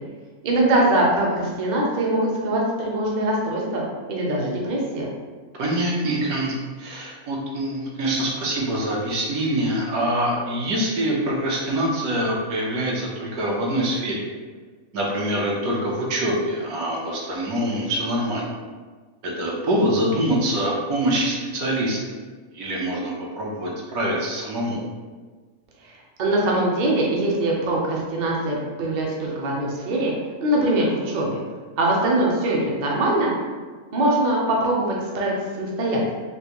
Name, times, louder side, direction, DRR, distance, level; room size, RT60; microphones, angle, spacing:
voice 1, 0.4-3.8 4.1-5.1 25.8-25.9 26.2-30.1 30.4-31.4 31.8-33.3 33.9-36.1, right 1 dB, 50° right, -3 dB, 0.5 m, -22 dB
voice 2, 5.6-14.2 14.9-18.4 19.2-22.0 22.5-24.8, right 1 dB, 75° right, -4 dB, 1.2 m, -25 dB
3.5 x 2.5 x 2.9 m, 1.4 s
omnidirectional pair, 1.6 m